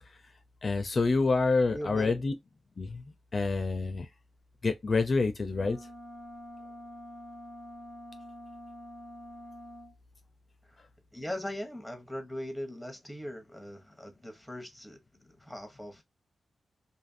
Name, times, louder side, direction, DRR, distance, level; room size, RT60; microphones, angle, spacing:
voice 1, 0.6-2.3 2.8-3.0 3.3-4.1 4.6-5.8, left 3 dB, 50° left, 0.4 m, -27 dB
voice 2, 1.7-2.2 10.6-10.8 11.1-15.0 15.4-16.0, left 1 dB, ahead, 0.9 m, -40 dB
sound 1, 5.5-10.0, equal, 65° right, 1.7 m, -46 dB
2.7 x 2.4 x 2.5 m
cardioid pair, 65°, 0 cm